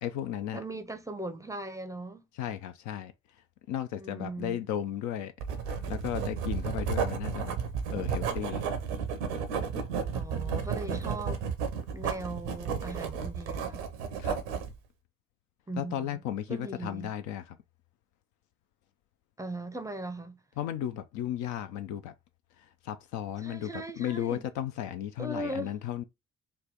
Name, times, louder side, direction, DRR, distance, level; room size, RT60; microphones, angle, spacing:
voice 1, 0.0-0.6 2.4-3.1 3.7-5.3 5.7-7.6 7.9-8.6 14.2-14.4 15.8-17.6 20.6-22.1 22.6-26.0, left 11 dB, 55° left, 0.5 m, -35 dB
voice 2, 0.5-2.2 3.9-4.6 10.1-11.4 11.9-13.9 15.7-16.2 16.5-17.1 19.4-20.4 23.4-24.4 25.2-25.7, right 2 dB, 10° right, 0.5 m, -39 dB
Writing, 5.4-14.7, right 6 dB, 75° right, 0.7 m, -33 dB
3.3 x 2.2 x 3.7 m
figure-of-eight pair, 40°, 35 cm